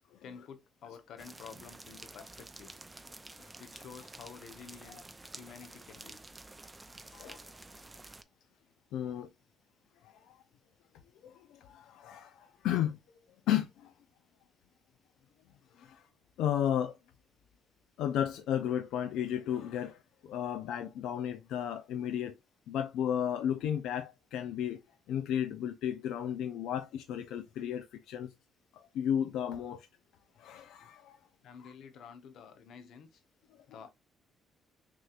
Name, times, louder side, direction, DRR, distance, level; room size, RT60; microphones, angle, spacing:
voice 1, 0.2-2.9 3.6-5.0 5.4-6.2 15.8-15.9 31.4-33.2 33.7-33.9, left 6 dB, 60° left, 0.8 m, -50 dB
sound 1, 1.2-8.2, right 2 dB, 10° right, 0.4 m, -50 dB
voice 2, 7.1-7.5 8.9-9.3 10.0-10.3 11.2-13.0 13.5-13.9 15.8-16.0 16.4-17.0 18.0-22.4 22.7-24.8 25.1-28.3 28.7-29.9 30.4-31.2 33.5-33.6, left 10 dB, 85° left, 0.4 m, -34 dB
6.1 x 2.9 x 2.4 m
cardioid pair, 160°, 0 cm